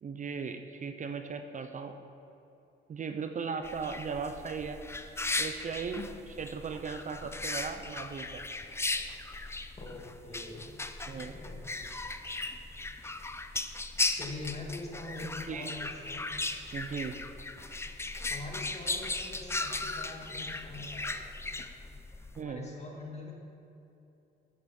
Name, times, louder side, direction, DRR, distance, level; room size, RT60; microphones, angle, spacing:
voice 1, 0.0-2.0 2.9-4.8 5.4-6.0 6.4-8.5 9.5-9.6 11.1-11.4 15.5-15.7 16.7-17.1 22.4-22.7, right 5 dB, 40° right, 7 dB, 0.6 m, -37 dB
sound 1, 3.6-22.4, left 2 dB, 15° left, 0.5 m, -37 dB
voice 2, 9.8-10.7 11.1-11.6 14.1-16.3 18.2-21.2 22.4-23.3, left 2 dB, 35° left, -1 dB, 2.2 m, -43 dB
10.5 x 7.8 x 4.3 m, 2.9 s
cardioid pair, 90°, 20 cm